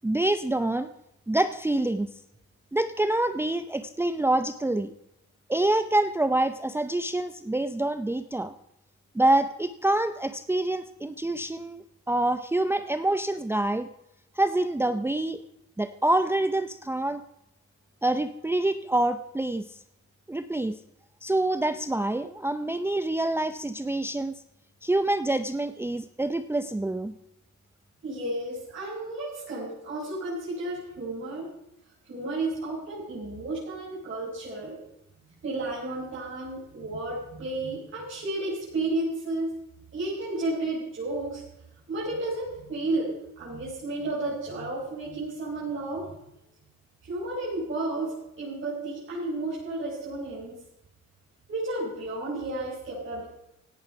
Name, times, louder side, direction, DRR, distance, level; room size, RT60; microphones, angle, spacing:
voice 1, 0.0-0.9 1.3-2.1 2.7-4.9 5.5-8.5 9.1-13.9 14.4-15.4 15.8-17.2 18.0-19.7 20.3-20.8 21.2-24.3 24.8-27.1, right 1 dB, 10° right, 11 dB, 0.6 m, -26 dB
voice 2, 28.0-31.5 32.1-34.8 35.4-39.5 39.9-41.4 41.9-46.1 47.0-50.6 51.5-53.3, right 2 dB, 40° right, -8 dB, 6.9 m, -32 dB
17.0 x 11.0 x 5.8 m, 0.84 s
cardioid pair, 90°, 30 cm